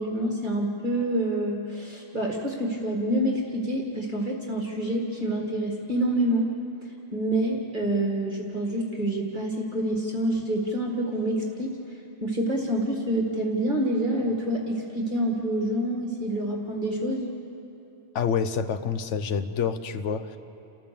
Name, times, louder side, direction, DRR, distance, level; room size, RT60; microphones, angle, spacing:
voice 1, 0.0-6.5 7.1-11.7 12.2-17.3, right 1 dB, 40° right, 0 dB, 2.0 m, -27 dB
voice 2, 18.1-20.4, left 6 dB, 75° left, 11 dB, 1.2 m, -27 dB
29.5 x 14.5 x 6.9 m, 2.9 s
omnidirectional pair, 1.2 m